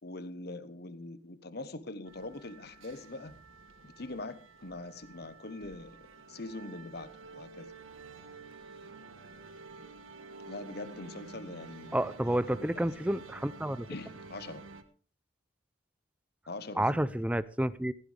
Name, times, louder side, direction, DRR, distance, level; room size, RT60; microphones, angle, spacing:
voice 1, 0.0-3.3 3.8-7.7 10.5-12.4 12.7-12.9 13.9-14.6 16.5-17.0, left 2 dB, 50° left, 1.1 m, -43 dB
sound 1, 2.1-14.8, right 3 dB, 90° right, 1.4 m, -50 dB
voice 2, 11.9-13.9 16.8-17.9, right 1 dB, 5° right, 0.5 m, -30 dB
16.0 x 15.5 x 3.4 m
head